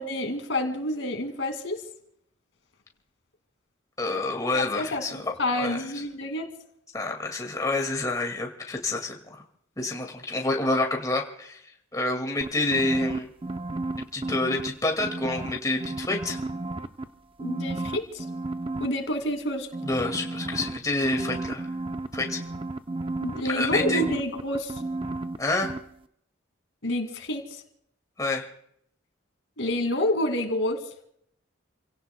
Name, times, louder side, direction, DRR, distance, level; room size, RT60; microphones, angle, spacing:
voice 1, 0.0-1.8 4.5-6.5 17.4-18.2 18.8-19.7 23.2-24.7 26.8-27.4 29.6-30.8, left 1 dB, 75° left, 6 dB, 2.4 m, -28 dB
voice 2, 4.0-5.2 5.6-5.8 6.9-9.4 9.8-11.6 11.9-13.3 14.1-16.4 19.8-21.7 22.1-22.4 23.5-24.0 25.4-25.7 28.2-28.5, left 2 dB, 20° left, 1 dB, 2.1 m, -28 dB
sound 1, 12.4-14.7 15.0-17.0 17.4-18.9 19.7-25.4 25.6-25.8, right 2 dB, 30° right, 0.6 m, -32 dB
30.0 x 17.0 x 2.2 m, 0.71 s
head